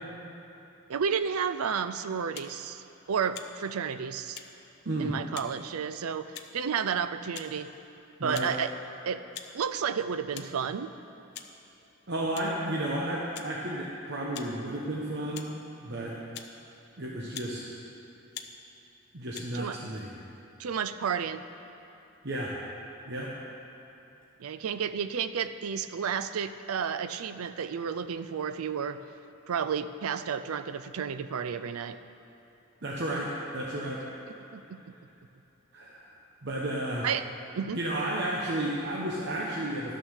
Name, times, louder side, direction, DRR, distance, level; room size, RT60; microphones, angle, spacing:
voice 1, 0.9-4.4 5.0-7.7 8.2-8.7 9.1-9.2 9.5-10.9 19.5-19.8 20.6-21.4 24.4-29.0 29.5-32.0 34.3-34.9 37.0-37.3 37.5-37.8, right 7 dB, 90° right, 12 dB, 0.4 m, -32 dB
sound 1, 2.3-2.5 3.3-3.5 4.3-4.5 5.3-5.5 6.3-6.6 7.3-7.5 8.3-8.5 9.3-9.5 10.3-10.5 11.3-11.5 12.3-12.5 13.3-13.5 14.3-14.5 15.3-15.5 16.3-16.5 17.3-17.5 18.3-18.5 19.3-19.5, left 9 dB, 50° left, 0.6 m, -42 dB
voice 2, 12.1-15.5 15.8-16.1 17.0-17.6 19.1-20.1 22.2-22.5 23.1-23.3 32.8-34.0 35.7-36.1 36.4-37.0 37.7-40.0, right 1 dB, 50° right, -4 dB, 0.9 m, -32 dB
12.5 x 6.4 x 6.4 m, 3.0 s
head